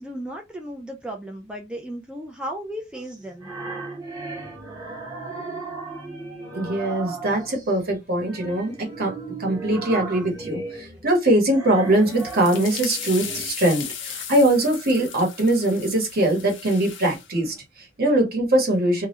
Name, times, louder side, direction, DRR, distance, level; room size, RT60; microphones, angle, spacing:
voice 1, 0.0-3.5, equal, 5° right, 0.3 m, -35 dB
sound 1, 2.9-7.7 8.2-13.5, right 3 dB, 20° right, 0.8 m, -36 dB
voice 2, 6.5-9.1 9.4-19.1, right 1 dB, 50° right, 0.9 m, -22 dB
sound 2, 11.9-17.3, left 8 dB, 65° left, 0.5 m, -36 dB
2.2 x 2.0 x 2.9 m
head